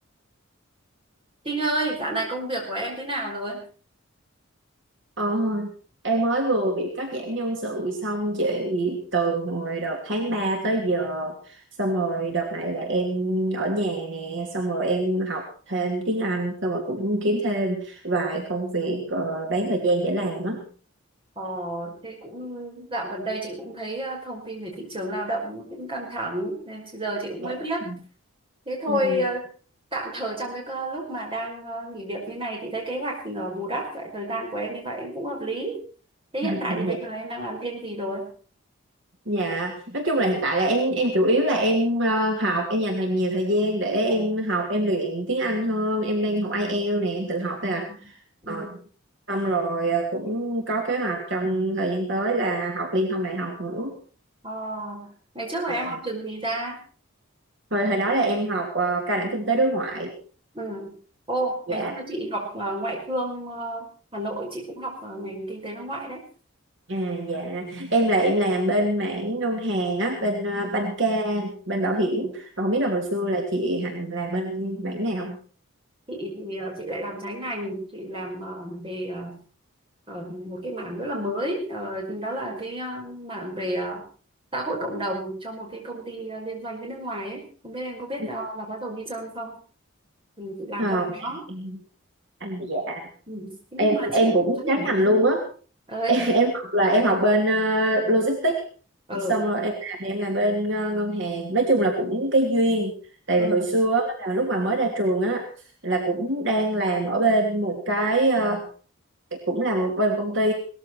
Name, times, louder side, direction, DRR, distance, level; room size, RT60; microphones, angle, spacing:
voice 1, 1.4-3.7 21.4-27.8 28.7-29.4 29.9-35.8 36.3-38.3 47.7-48.0 48.4-48.8 54.4-56.8 60.5-60.9 61.3-66.2 67.6-67.8 70.5-70.7 76.1-79.4 80.1-84.1 84.5-89.6 90.4-91.4 93.3-95.1 95.9-96.2 99.1-99.4 103.4-103.7, right 1 dB, 25° right, -1 dB, 5.3 m, -31 dB
voice 2, 5.2-5.7 6.0-20.7 27.4-27.5 27.9-28.0 28.9-29.3 36.4-37.0 39.3-48.1 48.5-48.8 49.3-53.9 55.7-56.0 57.7-60.1 61.7-61.9 66.9-75.4 88.2-88.3 90.8-91.8 92.4-93.0 93.8-95.4 96.1-98.6 99.1-102.9 103.3-105.4 105.8-108.6 109.3-110.5, right 1 dB, 60° right, 1 dB, 2.8 m, -24 dB
19.0 x 14.0 x 4.6 m, 0.40 s
head